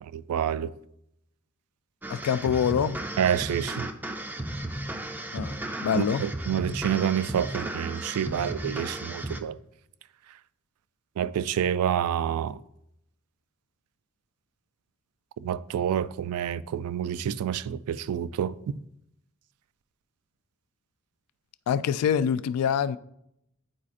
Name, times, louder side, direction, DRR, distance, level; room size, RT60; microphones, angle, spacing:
voice 1, 0.0-0.7 3.2-3.9 5.9-9.6 11.2-12.6 15.4-18.8, right 9 dB, 90° right, 0.3 m, -28 dB
sound 1, 2.0-9.4, right 1 dB, 10° right, 0.3 m, -35 dB
voice 2, 2.1-3.0 5.3-6.2 21.7-23.0, left 8 dB, 85° left, 0.3 m, -25 dB
9.8 x 4.1 x 2.5 m
head